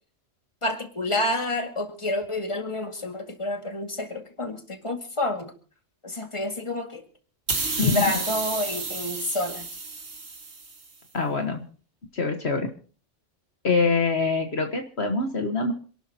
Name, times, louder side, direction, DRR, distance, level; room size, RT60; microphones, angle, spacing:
voice 1, 0.6-5.5 6.0-7.0 7.8-9.7, left 1 dB, 25° left, 5 dB, 2.1 m, -29 dB
sound 1, 7.5-10.9, right 4 dB, 65° right, 2.2 m, -31 dB
voice 2, 11.1-11.6 12.1-12.7 13.6-15.7, left 4 dB, 60° left, 4 dB, 1.6 m, -24 dB
27.5 x 12.0 x 2.8 m, 0.40 s
omnidirectional pair, 1.3 m